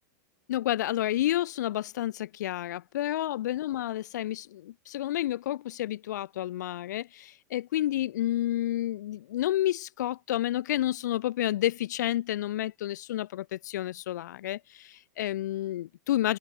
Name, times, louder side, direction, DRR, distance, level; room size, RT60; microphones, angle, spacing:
voice 1, 0.5-16.4, left 13 dB, 75° left, 7.8 m, -30 dB
hypercardioid pair, 110°, 9 cm